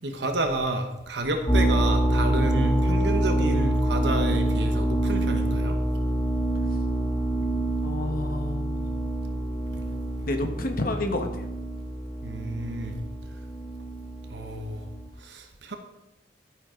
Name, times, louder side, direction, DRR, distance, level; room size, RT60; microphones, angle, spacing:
voice 1, 0.0-5.8 12.2-12.9 14.3-14.8 15.2-15.8, right 2 dB, 75° right, 5 dB, 1.1 m, -30 dB
sound 1, 1.5-15.1, right 1 dB, 20° left, 2.0 m, -26 dB
voice 2, 7.8-8.7 10.3-11.5, left 1 dB, 55° left, 5 dB, 1.2 m, -29 dB
12.0 x 9.4 x 3.8 m, 0.92 s
head